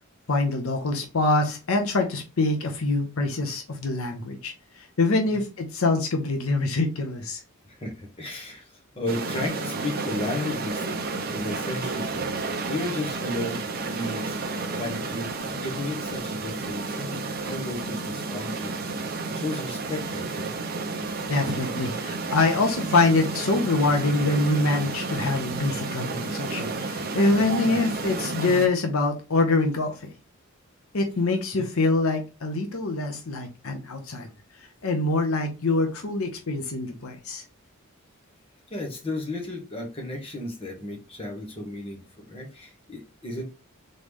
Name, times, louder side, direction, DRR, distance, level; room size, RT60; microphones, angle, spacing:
voice 1, 0.3-7.4 21.3-30.1 30.9-34.3 34.8-37.4, left 3 dB, 70° left, 4 dB, 0.8 m, -25 dB
voice 2, 7.6-12.4 12.7-14.4 14.8-18.7 19.2-20.5 27.7-27.8 31.5-31.6 38.7-43.4, left 2 dB, 25° left, 1 dB, 1.2 m, -34 dB
sound 1, 9.1-28.7, right 3 dB, 45° right, 0.7 m, -31 dB
3.9 x 3.3 x 3.6 m, 0.31 s
head